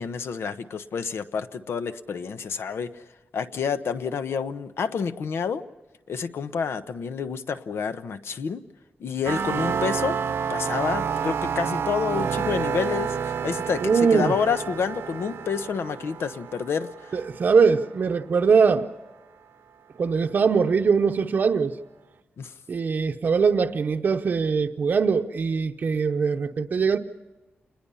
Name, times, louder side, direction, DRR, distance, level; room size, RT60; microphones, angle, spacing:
voice 1, 0.0-3.0 3.3-5.6 6.1-8.6 9.0-10.2 10.5-17.2 22.4-22.5, left 6 dB, 80° left, 1.0 m, -29 dB
sound 1, 9.3-17.9, right 7 dB, 90° right, 1.0 m, -29 dB
voice 2, 13.8-14.4 17.1-18.9 20.0-21.7 22.7-27.0, right 5 dB, 50° right, 0.8 m, -21 dB
29.0 x 21.0 x 5.6 m
wide cardioid pair, 175°, 4 cm